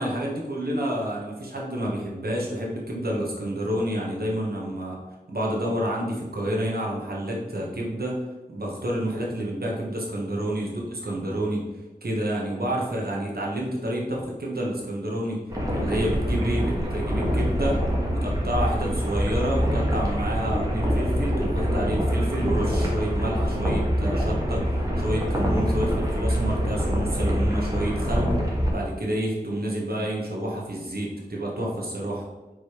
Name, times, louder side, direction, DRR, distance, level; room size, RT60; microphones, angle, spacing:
voice 1, 0.0-5.0 5.3-8.2 8.5-11.7 12.0-15.4 15.7-17.8 18.1-28.3 28.7-32.2, right 1 dB, 70° right, -3 dB, 1.5 m, -29 dB
sound 1, 15.5-28.7, equal, 20° right, 1.6 m, -25 dB
4.9 x 4.0 x 5.0 m, 1.1 s
wide cardioid pair, 65°, 17 cm